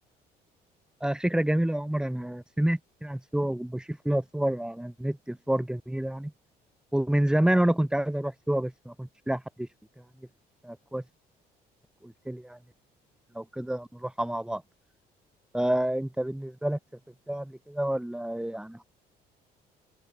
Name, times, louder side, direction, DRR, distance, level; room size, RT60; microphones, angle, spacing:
voice 1, 1.0-6.3 6.9-9.7 10.6-11.0 12.0-12.6 13.3-14.6 15.5-16.8 17.3-18.8, right 1 dB, 5° right, 5.0 m, -28 dB
open air
cardioid pair, 110°, 17 cm